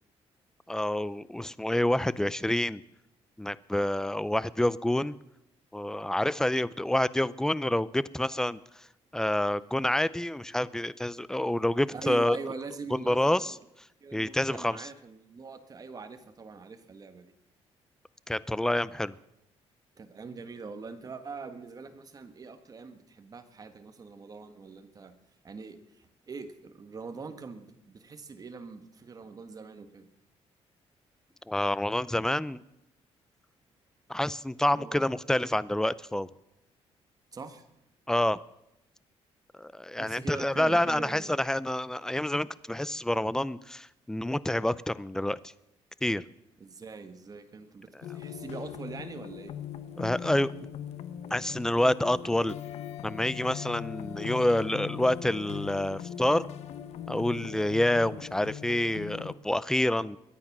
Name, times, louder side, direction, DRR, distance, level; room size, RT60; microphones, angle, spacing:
voice 1, 0.7-2.8 3.4-5.1 5.7-8.9 9.1-12.4 12.9-13.5 14.1-14.9 18.3-19.2 31.5-32.6 34.1-36.3 38.1-38.4 39.6-45.4 46.0-46.2 50.0-50.5 51.3-52.5 53.0-56.4 57.1-60.2, left 1 dB, 5° left, 18 dB, 0.5 m, -28 dB
voice 2, 11.9-13.6 14.0-17.3 20.0-25.1 25.4-30.1 34.7-35.1 37.3-37.6 40.0-41.4 46.6-49.5, right 4 dB, 35° right, 8 dB, 1.6 m, -43 dB
sound 1, 48.0-59.3, left 9 dB, 75° left, 0.9 m, -40 dB
22.5 x 9.8 x 6.0 m, 0.86 s
cardioid pair, 115°, 11 cm